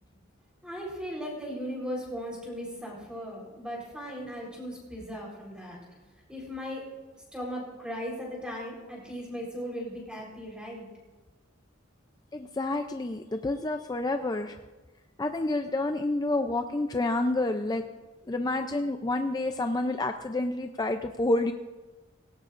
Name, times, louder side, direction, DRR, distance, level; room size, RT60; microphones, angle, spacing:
voice 1, 0.6-5.8 6.3-6.9 7.3-10.9, equal, 5° right, -2 dB, 3.9 m, -37 dB
voice 2, 12.3-14.6 15.2-17.8 18.3-21.5, left 2 dB, 20° left, 6 dB, 0.4 m, -29 dB
18.0 x 17.5 x 2.5 m, 1.2 s
head